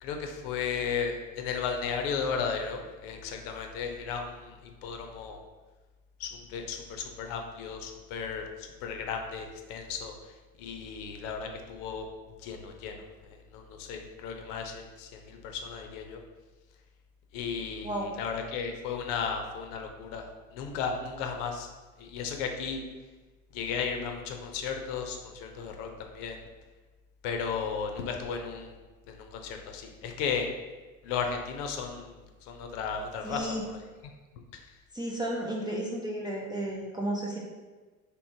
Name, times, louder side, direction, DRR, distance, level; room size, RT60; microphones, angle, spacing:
voice 1, 0.0-5.4 6.2-10.1 10.6-12.0 12.4-16.2 17.3-20.2 20.5-21.7 22.0-22.8 23.5-26.4 27.2-28.7 29.1-30.5 31.0-33.6, left 6 dB, 60° left, 4 dB, 0.6 m, -35 dB
voice 2, 33.2-33.6 34.9-37.4, right 1 dB, 10° right, -4 dB, 0.4 m, -33 dB
3.4 x 3.0 x 2.7 m, 1.2 s
hypercardioid pair, 85°, 42 cm